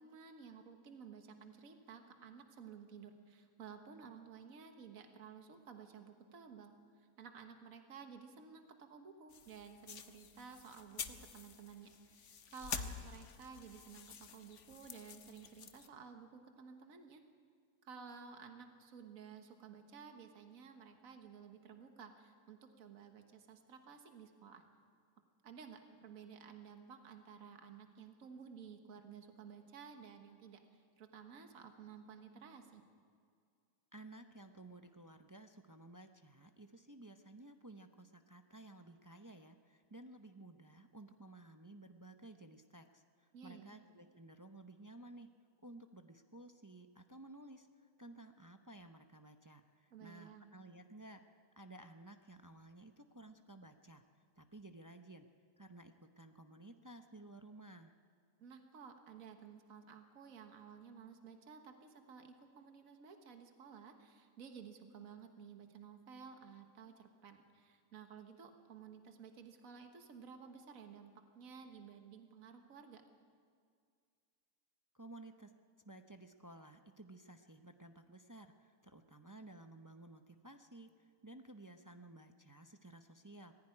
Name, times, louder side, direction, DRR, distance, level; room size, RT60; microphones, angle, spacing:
voice 1, 0.0-17.2 17.8-24.6 25.4-32.8 43.3-43.8 49.9-50.5 58.4-73.0, right 6 dB, 60° right, 6 dB, 1.7 m, -54 dB
sound 1, 9.3-15.9, left 7 dB, 55° left, 1.1 m, -48 dB
voice 2, 33.9-45.3 45.6-54.0 54.4-55.3 55.6-57.9 74.9-75.5 75.8-83.5, right 2 dB, 30° right, 6 dB, 0.3 m, -55 dB
19.0 x 15.5 x 9.8 m, 2.2 s
omnidirectional pair, 1.6 m